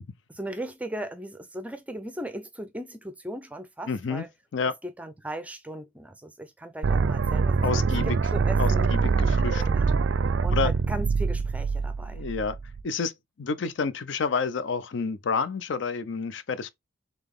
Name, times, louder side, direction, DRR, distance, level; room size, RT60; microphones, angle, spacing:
voice 1, 0.3-4.3 4.8-8.9 9.6-10.1 10.4-12.3, right 1 dB, 5° right, 0.5 m, -38 dB
voice 2, 3.9-4.2 4.5-4.7 7.6-8.2 8.6-9.6 10.5-10.7 12.1-12.6 12.8-13.1 13.4-16.7, left 4 dB, 70° left, 0.5 m, -29 dB
sound 1, 6.8-12.8, right 4 dB, 70° right, 0.4 m, -24 dB
3.8 x 3.3 x 3.5 m
head